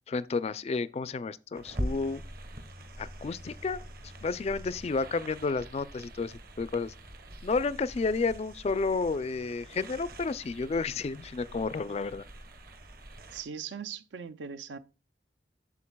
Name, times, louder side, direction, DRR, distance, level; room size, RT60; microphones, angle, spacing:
voice 1, 0.1-2.2 3.0-3.8 4.2-6.9 7.4-12.2, left 4 dB, 35° left, 0.3 m, -31 dB
sound 1, 1.5-13.4, equal, 55° right, 1.2 m, -43 dB
voice 2, 13.3-14.8, right 7 dB, 85° right, 0.5 m, -40 dB
8.4 x 6.8 x 2.2 m
head